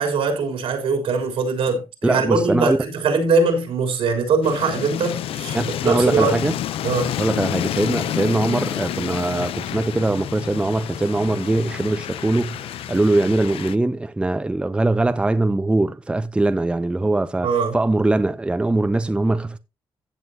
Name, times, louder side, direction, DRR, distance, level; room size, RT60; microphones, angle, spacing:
voice 1, 0.0-6.4 6.8-7.1 17.4-17.8, right 4 dB, 85° right, 3.5 m, -21 dB
voice 2, 2.0-2.8 5.5-6.5 7.2-19.6, right 2 dB, 10° right, 0.6 m, -21 dB
sound 1, 4.4-13.7, left 11 dB, 90° left, 0.6 m, -29 dB
15.5 x 7.7 x 2.7 m
cardioid pair, 110°, 9 cm